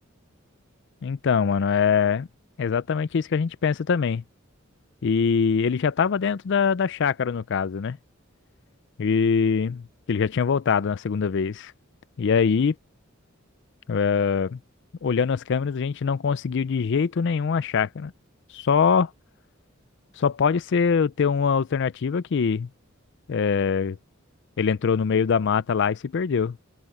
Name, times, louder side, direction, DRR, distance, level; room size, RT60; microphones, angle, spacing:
voice 1, 1.0-2.3 2.6-4.2 5.0-8.0 9.0-11.7 12.2-12.7 13.9-14.6 15.0-18.1 18.5-19.1 20.2-22.7 23.3-24.0 24.6-26.6, left 6 dB, 60° left, 0.4 m, -23 dB
open air
head